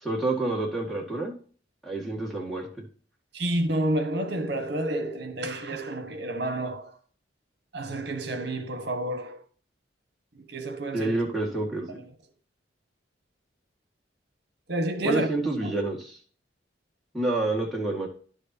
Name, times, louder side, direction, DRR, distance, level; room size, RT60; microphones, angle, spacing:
voice 1, 0.0-1.3 1.8-2.7 10.9-12.0 15.0-16.2 17.1-18.1, right 2 dB, ahead, 1.9 m, -28 dB
voice 2, 3.3-7.0 7.7-9.4 10.4-11.2 14.7-15.3 15.6-15.7, right 1 dB, 60° right, 1.4 m, -29 dB
11.0 x 6.6 x 2.8 m
head